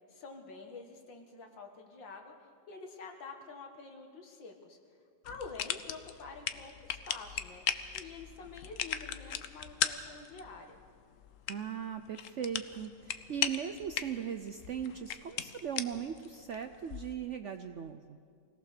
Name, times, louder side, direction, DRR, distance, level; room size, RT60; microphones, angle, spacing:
voice 1, 0.1-2.3 2.7-4.8 5.2-7.6 7.9-10.8, left 4 dB, 90° left, 3 dB, 2.6 m, -48 dB
sound 1, 5.2-17.2, left 9 dB, 60° left, 0.9 m, -39 dB
voice 2, 11.5-18.2, right 8 dB, 65° right, 8 dB, 0.7 m, -39 dB
24.5 x 18.0 x 6.7 m, 2.2 s
omnidirectional pair, 2.0 m